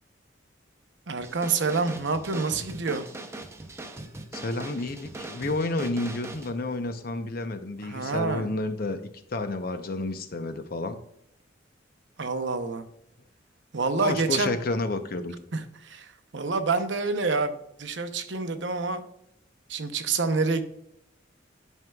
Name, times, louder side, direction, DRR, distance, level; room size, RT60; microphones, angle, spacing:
voice 1, 1.1-3.1 7.8-8.5 12.2-12.8 13.7-14.5 15.5-19.0 19.7-20.6, right 4 dB, 70° right, 8 dB, 0.8 m, -27 dB
sound 1, 1.2-6.5, right 2 dB, 15° right, 0.6 m, -40 dB
voice 2, 4.3-9.0 9.3-11.0 14.0-15.3, left 2 dB, 50° left, 8 dB, 0.7 m, -30 dB
11.0 x 5.5 x 2.3 m, 0.75 s
head